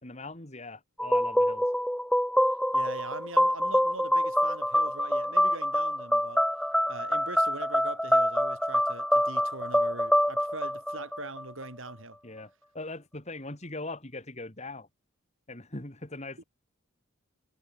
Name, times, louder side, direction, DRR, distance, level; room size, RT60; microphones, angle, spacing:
voice 1, 0.0-1.7 12.2-14.9 15.5-16.4, left 2 dB, 35° left, 2.8 m, -41 dB
sound 1, 1.0-11.6, equal, ahead, 1.8 m, -26 dB
voice 2, 2.7-6.4 6.9-12.2, right 2 dB, 70° right, 6.9 m, -41 dB
head